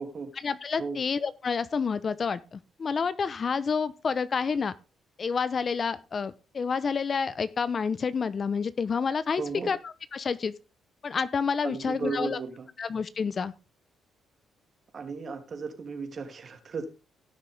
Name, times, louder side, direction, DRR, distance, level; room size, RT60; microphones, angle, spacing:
voice 1, 0.4-4.7 5.2-9.8 10.1-10.5 11.0-12.4 12.8-13.5, left 5 dB, 40° left, 16 dB, 0.9 m, -29 dB
voice 2, 9.4-9.7 11.6-12.7 14.9-16.9, right 4 dB, 45° right, 6 dB, 2.8 m, -35 dB
17.0 x 6.6 x 3.5 m, 0.30 s
cardioid pair, 90°, 0 cm